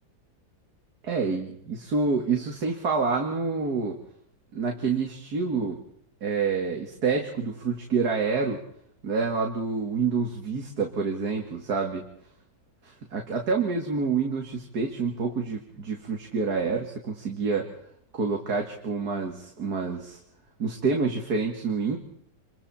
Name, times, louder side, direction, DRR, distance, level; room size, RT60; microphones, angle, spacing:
voice 1, 1.0-4.0 4.5-5.8 6.2-8.6 9.0-12.0 12.8-17.7 18.1-20.2 20.6-22.0, right 4 dB, 60° right, 2 dB, 2.7 m, -27 dB
29.0 x 24.5 x 4.4 m, 0.70 s
omnidirectional pair, 1.9 m